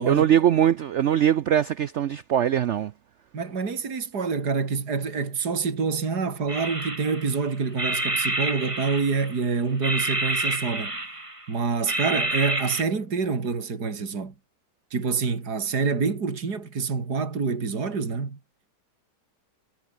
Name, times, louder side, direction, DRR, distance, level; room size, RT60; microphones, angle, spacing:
voice 1, 0.1-2.9, right 10 dB, 85° right, 0.6 m, -21 dB
voice 2, 3.3-11.0 11.5-14.3 14.9-18.4, right 5 dB, 60° right, 3.5 m, -27 dB
sound 1, 6.5-7.4 7.8-9.4 9.8-11.4 11.9-12.8, right 2 dB, 15° right, 2.8 m, -28 dB
omnidirectional pair, 2.0 m